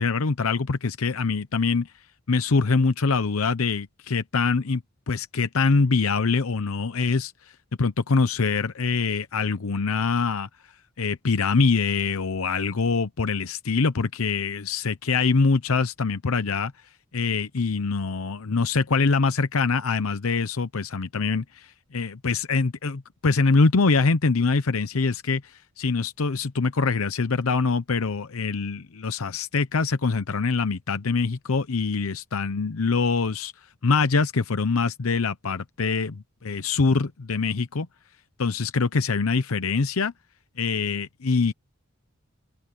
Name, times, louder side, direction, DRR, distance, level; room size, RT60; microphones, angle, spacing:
voice 1, 0.0-1.9 2.3-7.3 7.8-10.5 11.0-16.7 17.1-33.5 33.8-37.9 38.4-40.1 40.6-41.5, left 4 dB, 85° left, 0.8 m, -24 dB
head